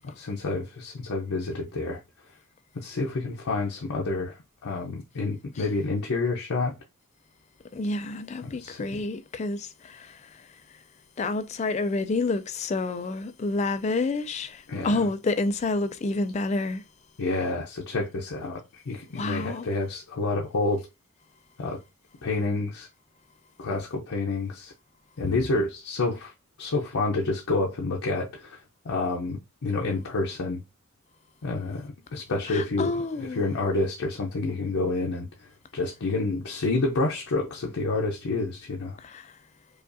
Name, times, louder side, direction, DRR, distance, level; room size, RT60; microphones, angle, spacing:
voice 1, 0.2-2.0 2.7-6.7 8.4-9.0 14.7-14.9 17.2-20.9 21.6-21.8 22.2-22.9 23.6-24.7 25.2-26.3 26.6-28.6 28.8-30.6 31.4-35.3 35.7-39.0, left 3 dB, 85° left, 0.6 m, -29 dB
voice 2, 7.7-10.5 11.2-16.8 19.2-19.7 32.5-33.4 39.0-39.3, left 3 dB, 30° left, 0.3 m, -29 dB
4.9 x 2.4 x 2.5 m
head